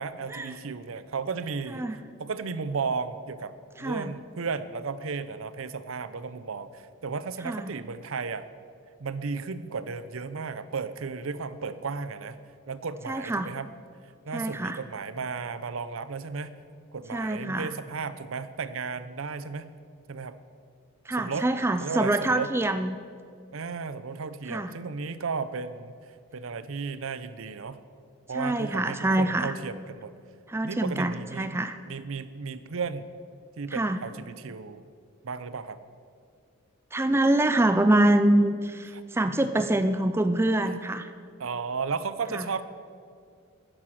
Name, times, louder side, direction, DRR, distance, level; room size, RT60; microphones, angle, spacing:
voice 1, 0.0-3.5 3.8-8.5 9.0-12.4 12.7-13.7 14.3-16.5 16.9-19.7 20.1-20.4 21.2-21.5 21.8-22.5 23.5-25.9 26.3-27.8 28.3-30.1 30.6-31.6 31.9-33.1 33.6-34.8 35.2-35.8 40.6-40.9 41.4-42.6, right 5 dB, 75° right, 14 dB, 0.6 m, -34 dB
voice 2, 3.8-4.1 7.4-7.7 13.1-13.5 14.3-14.8 17.1-17.7 21.1-23.0 24.5-24.7 28.3-29.5 30.5-31.8 33.7-34.0 36.9-41.1 42.3-42.5, right 1 dB, 10° right, 10 dB, 0.3 m, -25 dB
11.0 x 10.0 x 6.3 m, 2.3 s
head